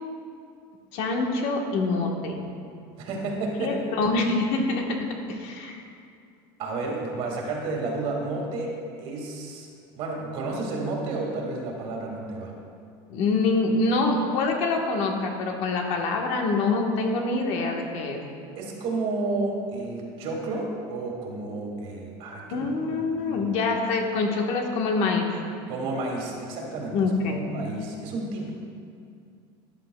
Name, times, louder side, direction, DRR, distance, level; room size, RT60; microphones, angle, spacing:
voice 1, 0.9-2.4 3.6-5.0 5.3-5.9 13.1-18.2 22.5-25.3 26.9-27.4, left 3 dB, 55° left, 1 dB, 1.3 m, -25 dB
voice 2, 3.0-3.9 6.6-9.7 9.9-12.5 18.6-23.4 25.7-28.5, right 2 dB, 55° right, 0 dB, 2.0 m, -31 dB
13.5 x 9.7 x 2.3 m, 2.4 s
cardioid pair, 150°, 12 cm